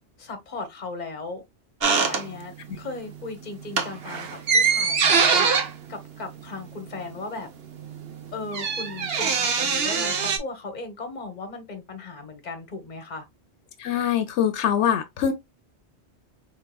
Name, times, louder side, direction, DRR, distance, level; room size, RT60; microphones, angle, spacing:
voice 1, 0.2-1.4 1.8-5.5 5.9-7.5 8.3-13.3, left 3 dB, 45° left, 1.0 m, -37 dB
sound 1, 1.8-2.8 3.1-3.3 3.6-7.1 7.4-7.5 7.7-10.4, right 5 dB, 65° right, 1.0 m, -23 dB
voice 2, 13.8-15.3, left 9 dB, 80° left, 0.9 m, -23 dB
4.5 x 3.6 x 2.2 m
omnidirectional pair, 1.1 m